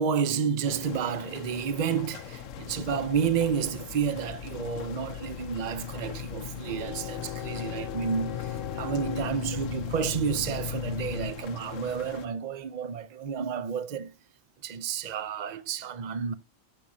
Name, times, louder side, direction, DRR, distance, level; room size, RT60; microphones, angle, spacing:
voice 1, 0.0-14.1 14.6-16.3, right 7 dB, 45° right, 0.6 m, -30 dB
sound 1, 0.6-12.3, left 10 dB, 75° left, 1.1 m, -43 dB
sound 2, 2.4-11.3, left 9 dB, 55° left, 0.7 m, -38 dB
15.5 x 6.2 x 2.7 m
omnidirectional pair, 1.3 m